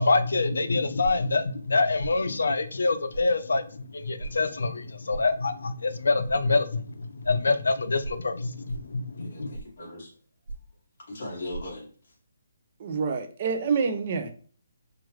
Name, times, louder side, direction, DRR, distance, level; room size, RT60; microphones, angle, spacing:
voice 1, 0.0-9.5, left 3 dB, 80° left, 0.5 m, -26 dB
sound 1, 1.0-1.3 2.0-2.2 3.1-3.3 4.2-4.4 5.1-5.3 6.2-6.4 7.2-7.3 8.0-8.2 8.7-8.9 9.5-9.8 10.5-10.7 11.5-11.6, right 3 dB, 75° right, 1.0 m, -37 dB
voice 2, 9.2-10.1 11.1-12.2, left 2 dB, 40° left, 2.0 m, -39 dB
voice 3, 12.8-14.3, right 5 dB, 30° right, 0.5 m, -27 dB
4.5 x 2.4 x 3.1 m
hypercardioid pair, 175°, 0 cm